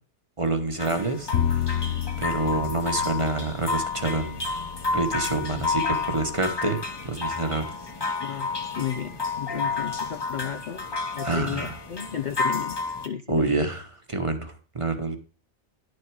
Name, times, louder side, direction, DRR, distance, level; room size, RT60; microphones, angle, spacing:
voice 1, 0.4-1.8 2.2-4.5 4.9-7.7 8.3-8.4 11.2-11.7 13.3-15.2, right 2 dB, 30° right, 7 dB, 1.1 m, -27 dB
sound 1, 0.8-13.1, left 4 dB, 20° left, 1.0 m, -31 dB
Bowed string instrument, 1.3-7.5, left 9 dB, 75° left, 1.4 m, -32 dB
voice 2, 5.4-5.7 8.2-10.9 11.1-13.4, left 8 dB, 50° left, 8 dB, 0.6 m, -34 dB
11.0 x 6.5 x 4.7 m, 0.35 s
omnidirectional pair, 1.2 m